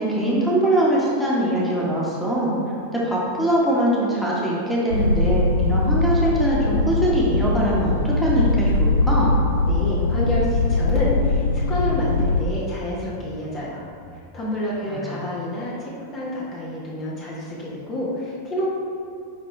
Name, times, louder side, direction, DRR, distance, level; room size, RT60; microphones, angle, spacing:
voice 1, 0.0-2.6 2.9-9.4 14.9-15.2, right 1 dB, 5° left, -6 dB, 1.5 m, -22 dB
sound 1, 4.9-12.4, left 2 dB, 75° left, 0.4 m, -21 dB
voice 2, 9.7-13.8 14.3-18.7, left 1 dB, 30° left, -6 dB, 1.2 m, -28 dB
sound 2, 13.0-14.5, right 3 dB, 30° right, 0.9 m, -43 dB
10.5 x 3.7 x 3.4 m, 2.5 s
figure-of-eight pair, 90°, 0 cm